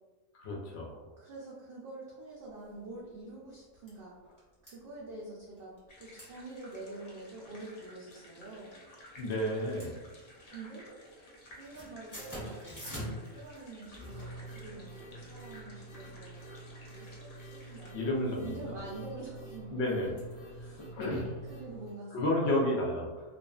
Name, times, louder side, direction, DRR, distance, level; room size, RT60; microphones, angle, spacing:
voice 1, 0.3-1.0 9.2-9.9 17.9-18.7 19.7-20.1 20.6-21.3 22.1-23.2, left 1 dB, 60° left, -2 dB, 0.8 m, -31 dB
voice 2, 1.2-4.2 4.6-5.7 6.0-8.7 10.5-10.9 11.5-16.4 16.9-18.0 18.4-19.8 20.5-20.8 21.4-22.2, right 3 dB, 65° right, -6 dB, 0.5 m, -46 dB
sound 1, 2.6-2.7 3.2-3.3 3.5-4.0 4.4-4.7 5.6-5.9 6.1-6.3 6.6-6.7 7.2-7.6 8.3-8.8 9.2-10.5 10.8-11.1 11.4-21.9, right 1 dB, 15° left, 0.8 m, -46 dB
sound 2, 5.9-17.9, left 1 dB, 90° left, 0.3 m, -55 dB
2.5 x 2.4 x 2.3 m, 1.3 s
omnidirectional pair, 1.4 m